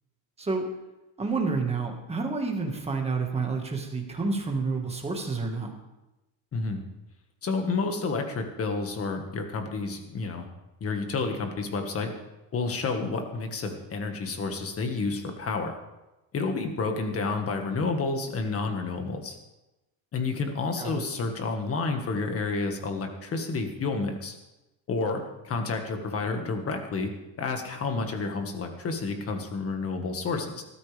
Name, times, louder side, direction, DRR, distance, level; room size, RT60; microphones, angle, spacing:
voice 1, 1.2-5.7 20.8-21.0, right 4 dB, 15° right, 1 dB, 1.7 m, -29 dB
voice 2, 6.5-6.8 7.4-10.5 10.8-12.1 12.5-15.8 16.3-19.4 20.1-24.3 24.9-27.1 27.4-30.6, left 3 dB, 30° left, 4 dB, 1.7 m, -30 dB
19.0 x 13.0 x 3.5 m, 1.0 s
cardioid pair, 175°, 46 cm